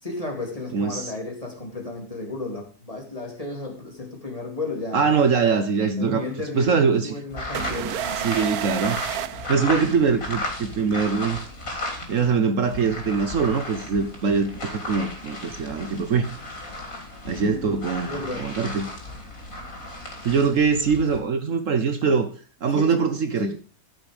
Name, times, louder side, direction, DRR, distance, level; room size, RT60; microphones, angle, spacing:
voice 1, 0.0-5.1 6.0-8.8 9.1-9.4 17.3-18.5 22.7-23.5, left 2 dB, 25° left, 2 dB, 2.9 m, -34 dB
voice 2, 0.7-1.1 4.9-6.2 6.5-7.2 8.2-9.0 9.5-11.4 12.0-16.3 17.2-18.1 18.4-18.9 20.2-22.3 22.6-23.5, right 5 dB, 60° right, 9 dB, 1.3 m, -22 dB
sound 1, 7.3-12.3 12.6-21.2, left 1 dB, 60° left, 3.5 m, -35 dB
sound 2, 7.5-10.3, right 11 dB, 80° right, 1.2 m, -31 dB
14.0 x 6.2 x 5.1 m, 0.39 s
omnidirectional pair, 1.6 m